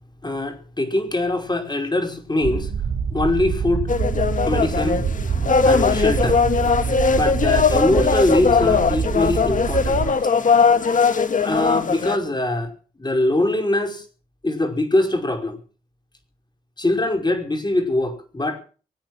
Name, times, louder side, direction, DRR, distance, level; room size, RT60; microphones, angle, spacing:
voice 1, 0.2-2.7 3.1-3.9 4.4-5.0 5.6-6.4 7.1-10.3 11.4-12.7 13.0-14.1 14.4-15.6 16.8-18.6, left 2 dB, 30° left, 5.4 m, -22 dB
sound 1, 2.4-10.1, right 6 dB, 75° right, 3.9 m, -25 dB
sound 2, 3.9-12.2, left 5 dB, 60° left, 1.8 m, -19 dB
24.0 x 9.4 x 6.2 m
supercardioid pair, 45°, 15 cm